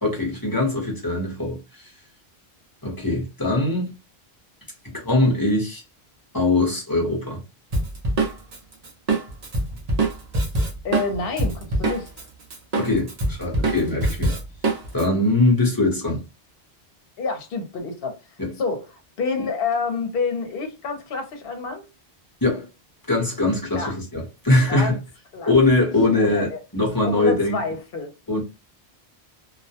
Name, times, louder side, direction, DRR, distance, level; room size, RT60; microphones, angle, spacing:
voice 1, 0.0-1.9 2.8-3.9 4.8-5.8 6.3-7.4 12.8-14.3 14.9-16.2 18.4-18.5 22.4-22.7 23.1-25.0 25.5-27.6 28.3-28.4, left 2 dB, 20° left, 0.8 m, -22 dB
Drum kit, 7.7-12.2 12.5-15.0, right 2 dB, 45° right, 0.7 m, -24 dB
voice 2, 10.8-12.1 17.2-18.2 18.6-21.9 23.8-23.9 24.7-25.0 25.3-25.5 25.8-26.6 27.0-28.1, left 4 dB, 65° left, 0.9 m, -28 dB
2.4 x 2.1 x 2.7 m
omnidirectional pair, 1.1 m